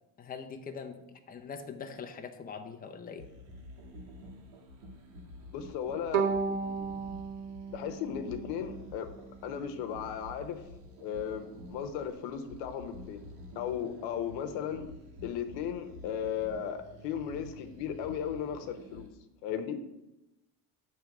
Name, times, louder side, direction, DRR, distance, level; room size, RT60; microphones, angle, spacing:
voice 1, 0.2-3.3, left 6 dB, 20° left, 5 dB, 0.6 m, -42 dB
sound 1, 3.2-19.1, equal, 90° right, 1.8 m, -49 dB
voice 2, 5.5-6.3 7.7-9.1 9.4-10.6 11.0-13.2 13.6-14.9 15.2-19.1 19.4-19.8, left 8 dB, 85° left, 7 dB, 0.9 m, -36 dB
Bowed string instrument, 6.1-9.2, right 5 dB, 70° right, 1.3 m, -34 dB
7.5 x 3.3 x 5.8 m, 0.93 s
cardioid pair, 110°, 43 cm